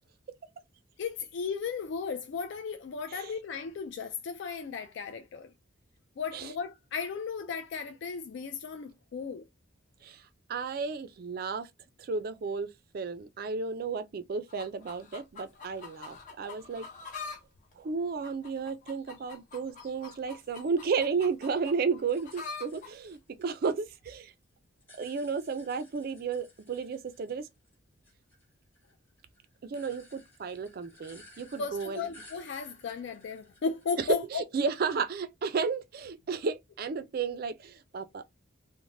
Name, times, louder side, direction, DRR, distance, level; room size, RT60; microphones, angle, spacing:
voice 1, 1.0-5.5 6.2-9.5 31.6-34.4, left 5 dB, 60° left, 0.3 m, -35 dB
voice 2, 10.5-11.7 12.0-16.9 17.8-24.3 25.0-27.5 29.6-32.1 34.3-38.2, right 5 dB, 50° right, 0.3 m, -33 dB
sound 1, 14.5-17.4 17.7-22.9 23.7-23.8, left 4 dB, 40° left, 0.8 m, -45 dB
sound 2, 22.1-24.1 24.4-27.8 28.0-34.4, left 1 dB, 10° left, 1.0 m, -57 dB
3.1 x 2.0 x 2.6 m
head